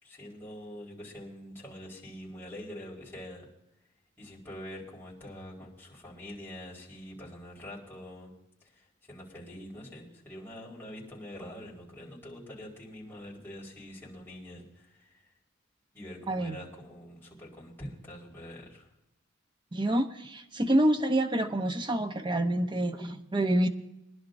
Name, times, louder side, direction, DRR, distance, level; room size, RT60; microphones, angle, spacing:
voice 1, 0.0-3.5 4.2-8.3 8.7-15.2 15.9-18.9, left 1 dB, 10° left, -5 dB, 4.7 m, -45 dB
voice 2, 16.3-16.6 19.7-23.7, right 1 dB, 25° right, 6 dB, 0.8 m, -27 dB
24.5 x 11.5 x 2.6 m, 0.88 s
head